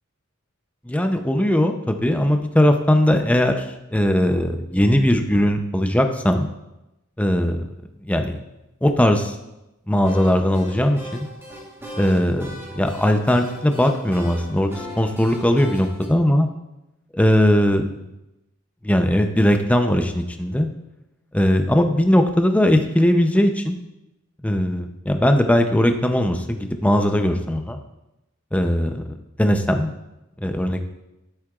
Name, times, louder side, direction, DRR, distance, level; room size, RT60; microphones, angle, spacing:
voice 1, 0.9-6.5 7.2-7.7 8.0-8.4 8.8-9.4 9.9-11.3 12.0-16.5 17.1-17.9 18.8-20.7 21.3-23.8 24.4-27.8 28.5-29.9 30.4-30.9, left 1 dB, 5° left, 5 dB, 0.6 m, -19 dB
sound 1, 10.0-16.1, equal, 10° right, 1.3 m, -39 dB
12.0 x 7.7 x 2.4 m, 0.93 s
head